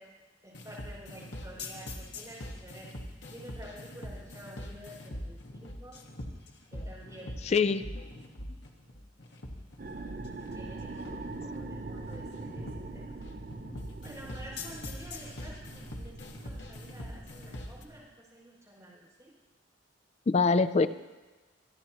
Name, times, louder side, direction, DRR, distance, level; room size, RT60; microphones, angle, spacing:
voice 1, 0.4-2.9 3.3-6.0 6.7-7.7 8.0-8.5 10.5-13.2 14.0-19.3, right 1 dB, 15° right, -6 dB, 5.5 m, -50 dB
sound 1, 0.5-17.8, left 1 dB, 65° left, 1.6 m, -43 dB
voice 2, 7.5-7.8 10.3-10.4 20.3-20.9, left 4 dB, 35° left, 14 dB, 0.4 m, -24 dB
sound 2, 9.8-18.0, right 3 dB, 45° right, 0.6 m, -43 dB
25.5 x 10.5 x 3.0 m, 1.2 s
head